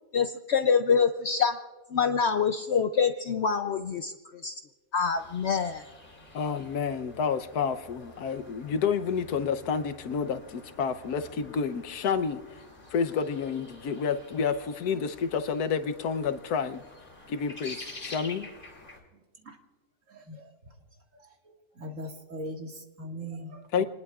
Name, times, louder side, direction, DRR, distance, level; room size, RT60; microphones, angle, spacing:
voice 1, 0.1-1.6 1.9-4.6 4.9-5.8, left 6 dB, 60° left, 9 dB, 0.8 m, -26 dB
sound 1, 5.1-19.0, left 1 dB, 35° left, 3.0 m, -49 dB
voice 2, 6.3-12.6 12.9-16.8 17.3-18.5 23.7-23.8, left 6 dB, 85° left, 10 dB, 1.4 m, -29 dB
voice 3, 20.1-20.5 21.2-21.3 21.8-23.9, equal, 55° right, 2 dB, 2.2 m, -40 dB
28.5 x 20.0 x 2.4 m, 1.3 s
omnidirectional pair, 1.6 m